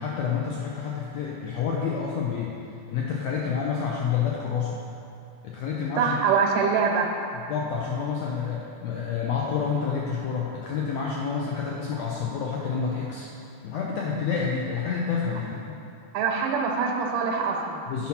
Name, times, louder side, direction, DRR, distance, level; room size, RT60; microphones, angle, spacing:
voice 1, 0.0-2.5 2.9-4.8 5.4-6.2 7.3-13.3 13.6-15.8 17.9-18.1, left 6 dB, 85° left, -3 dB, 1.5 m, -29 dB
voice 2, 6.0-7.1 16.1-17.8, right 5 dB, 85° right, -1 dB, 2.3 m, -24 dB
8.3 x 5.8 x 4.2 m, 2.7 s
omnidirectional pair, 3.7 m